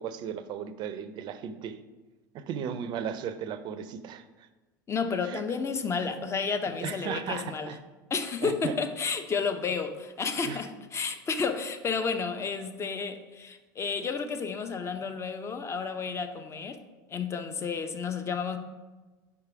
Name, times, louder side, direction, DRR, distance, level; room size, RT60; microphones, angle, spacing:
voice 1, 0.0-1.8 2.3-4.5 5.3-5.4 6.8-7.8 8.4-8.7 10.4-10.6, right 8 dB, 45° right, 12 dB, 0.5 m, -36 dB
voice 2, 4.9-7.7 8.1-16.8 17.1-18.6, left 5 dB, 25° left, 8 dB, 0.6 m, -31 dB
5.2 x 4.8 x 4.7 m, 1.2 s
hypercardioid pair, 80°, 11 cm